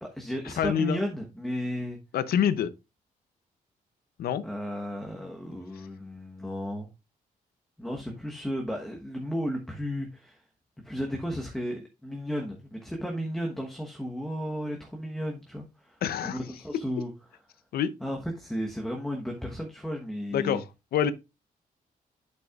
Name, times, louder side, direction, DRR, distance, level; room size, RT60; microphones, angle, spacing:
voice 1, 0.0-2.0 4.4-6.9 7.8-10.4 10.8-17.1 18.0-20.6, equal, 5° left, 1.1 m, -34 dB
voice 2, 0.6-1.0 2.1-2.7 4.2-4.5 16.0-16.4 17.7-17.9 20.3-20.6 20.9-21.1, left 9 dB, 80° left, 0.7 m, -26 dB
8.5 x 6.5 x 2.4 m
cardioid pair, 145°, 15 cm